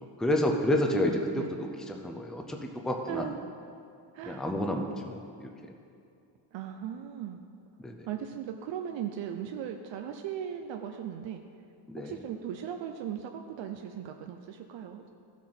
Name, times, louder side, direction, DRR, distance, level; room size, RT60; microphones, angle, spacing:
voice 1, 0.2-3.2 4.3-5.5 7.8-8.1 11.9-12.2, left 1 dB, ahead, 3 dB, 0.4 m, -30 dB
voice 2, 3.1-3.4 4.1-4.5 6.5-7.4 8.1-11.4 12.0-15.1, right 9 dB, 75° right, 5 dB, 0.6 m, -38 dB
15.0 x 6.1 x 4.3 m, 2.6 s
cardioid pair, 180°, 46 cm